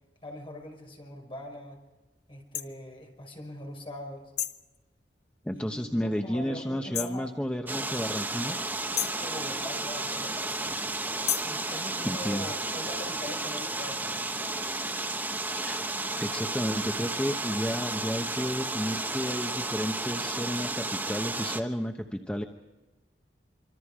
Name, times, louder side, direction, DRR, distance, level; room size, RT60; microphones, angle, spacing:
voice 1, 0.2-1.8 2.3-4.3 5.5-7.3 9.0-10.8 11.4-14.5, left 1 dB, 30° left, 2 dB, 5.6 m, -42 dB
sound 1, 2.5-2.7 4.4-4.7 6.9-7.2 9.0-9.3 11.3-11.6, left 10 dB, 65° left, 1.1 m, -31 dB
voice 2, 5.4-8.6 11.7-12.4 15.5-15.8 16.2-22.4, equal, 5° left, 4 dB, 1.0 m, -32 dB
sound 2, 7.7-21.6, right 2 dB, 10° right, 1.3 m, -33 dB
25.5 x 25.5 x 5.0 m, 1.1 s
head